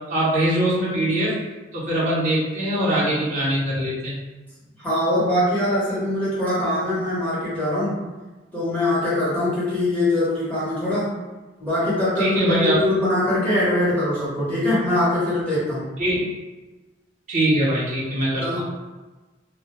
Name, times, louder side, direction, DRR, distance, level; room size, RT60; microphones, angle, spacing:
voice 1, 0.1-1.4 1.7-4.1 12.2-12.8 16.0-16.2 17.3-18.6, right 1 dB, 45° right, -8 dB, 0.8 m, -22 dB
voice 2, 4.8-8.0 8.5-11.1 11.6-15.9 18.4-18.6, left 1 dB, 10° left, -10 dB, 0.9 m, -22 dB
2.2 x 2.0 x 2.9 m, 1.2 s
head